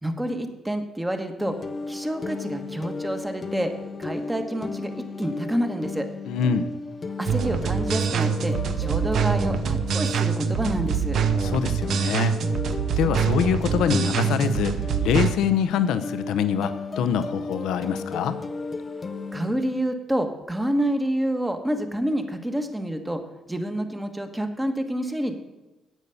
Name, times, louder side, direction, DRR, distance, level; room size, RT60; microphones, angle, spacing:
voice 1, 0.0-1.6 1.9-3.7 4.0-4.9 5.2-6.1 7.2-11.2 19.3-23.2 23.5-25.3, right 1 dB, 10° right, 6 dB, 1.3 m, -28 dB
sound 1, 1.4-19.6, left 3 dB, 35° left, 0.8 m, -34 dB
voice 2, 6.3-6.7 11.4-12.3 13.0-14.8 15.0-18.3, left 8 dB, 85° left, 11 dB, 0.7 m, -24 dB
sound 2, 7.3-15.3, right 7 dB, 65° right, 0.8 m, -25 dB
9.1 x 8.2 x 6.9 m, 1.1 s
cardioid pair, 90°, 0 cm